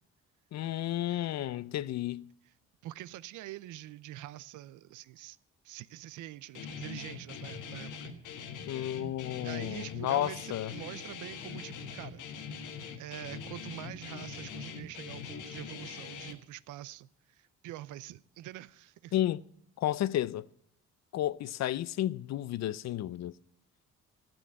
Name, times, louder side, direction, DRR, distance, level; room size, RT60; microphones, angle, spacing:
voice 1, 0.5-2.2 8.7-10.7 19.1-19.4 19.8-20.5 21.1-23.3, left 13 dB, 60° left, 0.5 m, -32 dB
voice 2, 2.8-5.4 5.6-8.1 9.4-12.2 13.0-19.1, right 14 dB, 85° right, 0.6 m, -45 dB
Guitar, 6.5-16.3, left 6 dB, 80° left, 1.4 m, -43 dB
13.0 x 8.0 x 7.5 m
cardioid pair, 90°, 30 cm